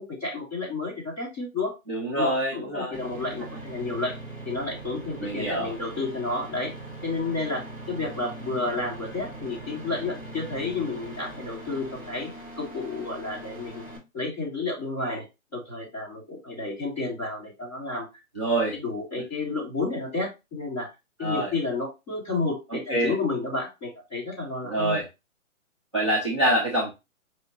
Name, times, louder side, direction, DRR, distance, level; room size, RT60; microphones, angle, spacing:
voice 1, 0.0-1.7 2.2-4.2 4.4-6.7 7.0-12.3 12.6-13.8 14.1-15.2 15.5-18.1 18.5-20.9 21.2-25.0, left 3 dB, 10° left, -9 dB, 1.6 m, -31 dB
voice 2, 1.9-3.0 5.2-5.7 18.3-18.7 21.2-21.5 22.7-23.1 24.6-25.1 25.9-26.9, right 1 dB, 20° right, -5 dB, 0.6 m, -26 dB
sound 1, 2.9-14.0, right 1 dB, 5° right, 1.4 m, -41 dB
5.4 x 2.8 x 2.9 m, 0.24 s
hypercardioid pair, 175°, 42 cm